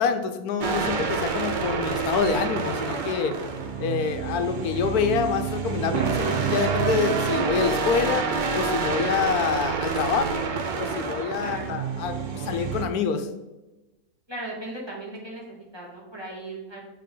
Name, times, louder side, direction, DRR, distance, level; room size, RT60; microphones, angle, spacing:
voice 1, 0.0-3.4 3.8-10.4 10.8-13.3, left 6 dB, 85° left, 8 dB, 1.1 m, -26 dB
sound 1, 0.6-12.8, right 5 dB, 60° right, 0.5 m, -28 dB
voice 2, 11.4-11.8 14.3-16.8, right 1 dB, 15° right, -5 dB, 1.7 m, -37 dB
7.6 x 3.7 x 3.7 m, 1.1 s
omnidirectional pair, 1.6 m